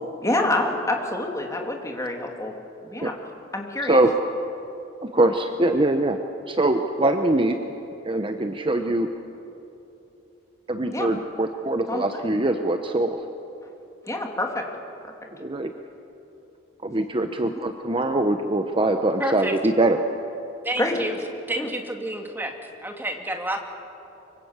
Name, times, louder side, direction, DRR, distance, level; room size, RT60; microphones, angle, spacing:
voice 1, 0.2-2.5 2.8-3.1 3.5-4.0 10.9-11.1 11.9-12.3 14.1-14.7 17.5-17.7 20.8-21.0 21.6-21.7, left 2 dB, 15° left, 2 dB, 2.6 m, -27 dB
voice 2, 5.0-6.2 6.5-7.6 8.0-9.1 10.7-13.2 15.4-15.7 16.8-20.0, right 2 dB, 25° right, 6 dB, 0.9 m, -22 dB
voice 3, 19.2-19.5 20.6-21.2 21.5-22.5 22.8-23.6, right 1 dB, 10° right, 3 dB, 2.2 m, -29 dB
24.5 x 24.0 x 8.1 m, 2.9 s
head